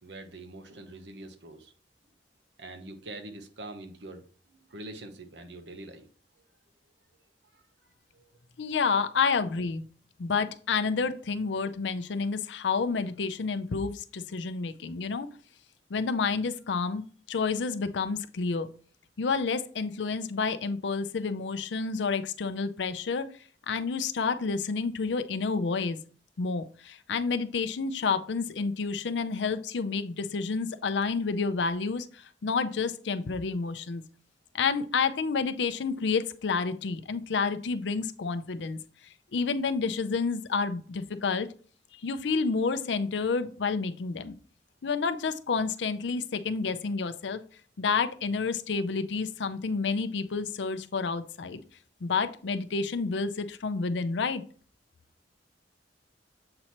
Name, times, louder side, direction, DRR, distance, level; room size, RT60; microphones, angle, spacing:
voice 1, 0.0-1.7 2.6-6.1 6.4-6.5 7.5-7.6 8.1-8.3, right 2 dB, 75° right, 6 dB, 0.9 m, -44 dB
voice 2, 8.6-9.8 10.2-15.3 15.9-17.0 17.3-18.7 19.2-23.3 23.7-26.0 26.4-34.0 34.5-38.8 39.3-41.5 41.9-44.3 44.8-47.4 47.8-51.6 52.0-54.4, left 4 dB, 75° left, 10 dB, 0.5 m, -29 dB
7.7 x 3.0 x 4.2 m, 0.42 s
head